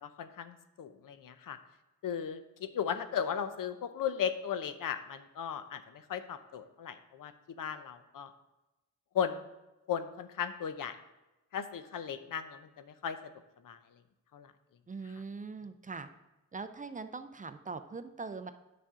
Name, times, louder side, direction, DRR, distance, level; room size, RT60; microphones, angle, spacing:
voice 1, 0.0-1.6 2.0-8.3 9.1-9.5 9.9-11.0 11.5-13.2 13.6-13.8 14.3-14.5, left 8 dB, 90° left, 10 dB, 0.7 m, -36 dB
voice 2, 14.9-16.1 16.5-18.5, right 4 dB, 25° right, 10 dB, 0.4 m, -42 dB
10.0 x 6.0 x 3.7 m, 1.0 s
wide cardioid pair, 125°, 32 cm